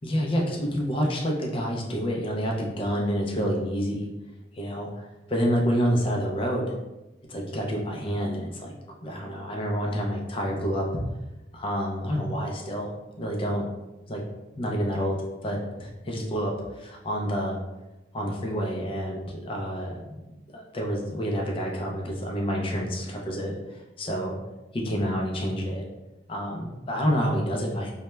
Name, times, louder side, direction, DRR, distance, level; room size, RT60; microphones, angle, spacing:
voice 1, 0.0-4.1 4.5-5.0 5.3-6.7 7.3-8.7 9.0-10.9 11.5-12.9 13.2-13.6 14.1-14.2 14.6-15.2 15.4-17.6 18.1-20.1 20.5-24.4 24.7-25.9 26.3-27.9, equal, 30° left, 0 dB, 0.4 m, -28 dB
2.2 x 2.1 x 3.0 m, 1.0 s
head